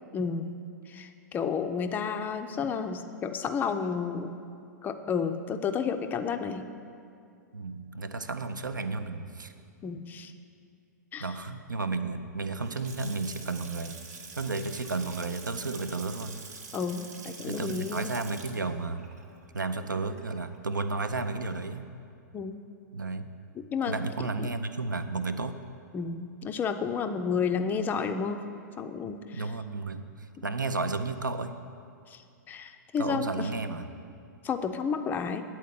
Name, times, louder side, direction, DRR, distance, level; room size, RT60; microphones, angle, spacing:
voice 1, 0.1-0.6 0.9-4.4 4.8-6.7 9.8-10.3 11.1-11.4 16.7-18.1 22.3-22.6 23.5-24.0 24.4-24.5 25.9-28.4 28.8-29.5 30.4-30.5 32.1-32.2 32.5-33.5 34.4-35.4, left 6 dB, 20° left, 7 dB, 0.4 m, -31 dB
voice 2, 7.5-9.5 11.2-14.0 14.4-16.4 17.4-19.1 19.5-21.9 22.9-23.3 23.9-25.6 29.3-30.0 30.4-31.5 33.0-33.9, right 3 dB, 80° right, 10 dB, 0.5 m, -32 dB
Water tap faucet / Sink (filling or washing) / Splash splatter, 12.5-20.6, right 4 dB, 55° right, 0.9 m, -46 dB
9.2 x 4.2 x 7.4 m, 2.4 s
figure-of-eight pair, 105°, 10 cm